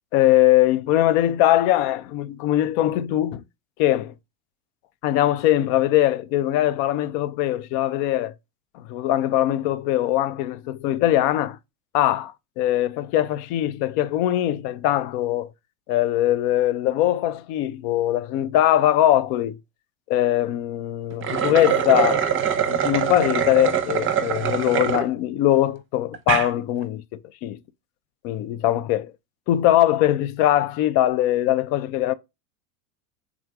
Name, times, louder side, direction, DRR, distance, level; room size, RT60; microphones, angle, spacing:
voice 1, 0.1-3.4 3.8-4.1 5.0-8.3 8.7-11.6 11.9-15.5 15.9-19.6 20.1-22.3 22.7-27.6 28.2-29.1 29.5-32.1, left 13 dB, 55° left, 0.5 m, -21 dB
sound 1, 21.1-25.0 25.5-25.6 26.1-26.5, right 8 dB, 30° right, 0.8 m, -23 dB
3.6 x 3.2 x 3.6 m
hypercardioid pair, 90°, 44 cm